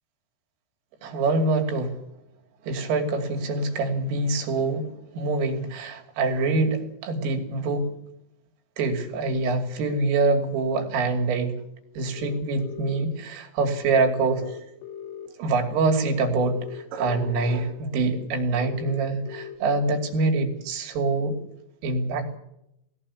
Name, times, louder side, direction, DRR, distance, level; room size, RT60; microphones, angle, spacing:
voice 1, 1.0-2.0 2.7-4.9 5.2-7.9 8.8-11.5 12.0-14.6 15.4-21.4 21.8-22.4, right 3 dB, 80° right, 3 dB, 5.4 m, -25 dB
sound 1, 12.1-13.1 14.1-15.3 16.4-17.5 18.6-19.6, left 9 dB, 75° left, 4.3 m, -39 dB
19.0 x 17.0 x 8.5 m, 0.81 s
omnidirectional pair, 5.8 m